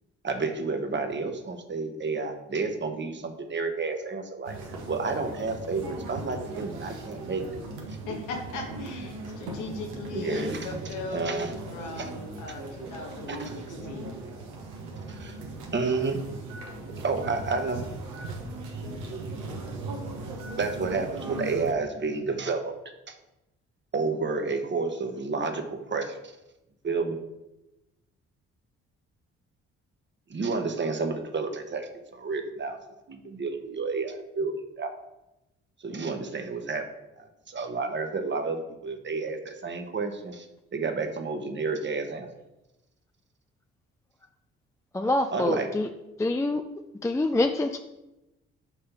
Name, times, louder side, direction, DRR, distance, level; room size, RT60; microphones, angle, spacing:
voice 1, 0.2-4.6 4.9-7.4 10.1-10.8 11.1-12.1 13.3-13.5 15.1-15.4 15.7-16.2 17.0-17.8 20.6-22.7 23.1-23.2 23.9-26.2 26.8-27.2 30.3-32.8 33.1-34.9 35.8-36.8 37.2-40.5 40.7-42.3 45.3-45.7, right 4 dB, 35° right, 6 dB, 1.1 m, -30 dB
sound 1, 4.4-21.7, right 2 dB, 80° right, 1.1 m, -38 dB
voice 2, 8.1-14.2, left 3 dB, 75° left, 2 dB, 1.4 m, -38 dB
voice 3, 44.9-45.9 46.2-46.6 47.0-47.8, left 2 dB, 10° left, 6 dB, 0.4 m, -25 dB
5.9 x 3.3 x 5.7 m, 0.94 s
hypercardioid pair, 50°, 31 cm